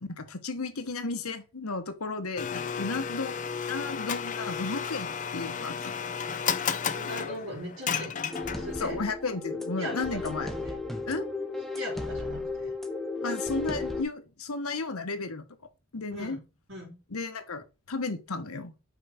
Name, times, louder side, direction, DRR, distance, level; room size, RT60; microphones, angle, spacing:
voice 1, 0.0-6.0 8.8-10.5 11.1-11.3 13.2-15.4 15.9-16.4 17.1-18.7, left 3 dB, 90° left, 1.1 m, -34 dB
Domestic sounds home sounds, 2.4-8.9, left 7 dB, 35° left, 0.5 m, -33 dB
voice 2, 6.9-8.2 8.5-9.0 9.8-10.8 11.8-12.7 16.1-16.4 16.7-17.0, equal, 65° right, 3.7 m, -40 dB
sound 1, 8.3-14.0, left 3 dB, ahead, 0.8 m, -34 dB
5.9 x 4.6 x 5.8 m
head